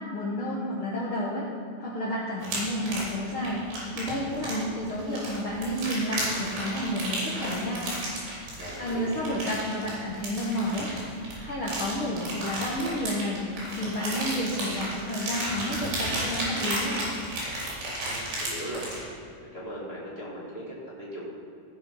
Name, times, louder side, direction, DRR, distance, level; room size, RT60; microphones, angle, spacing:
voice 1, 0.0-1.4 1.8-7.8 8.5-17.0, equal, 85° left, -5 dB, 1.1 m, -31 dB
sound 1, 2.4-19.0, right 1 dB, 85° right, 5.5 m, -33 dB
voice 2, 8.6-9.1 18.0-18.8 19.5-21.3, equal, 25° right, -7 dB, 1.4 m, -39 dB
17.0 x 6.4 x 5.6 m, 2.6 s
omnidirectional pair, 4.6 m